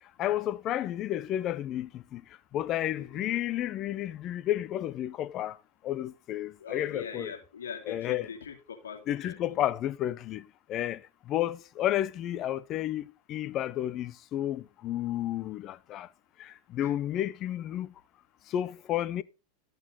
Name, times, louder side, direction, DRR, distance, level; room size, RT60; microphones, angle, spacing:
voice 1, 0.2-2.2 2.5-5.6 5.8-7.3 7.9-8.3 9.1-10.4 10.7-11.0 11.3-16.1 16.4-17.9 18.5-19.2, left 12 dB, 40° left, 0.7 m, -31 dB
voice 2, 3.0-3.4 6.6-9.6 16.8-16.9, left 6 dB, 85° left, 2.5 m, -42 dB
13.5 x 6.6 x 3.8 m
hypercardioid pair, 105°, 0 cm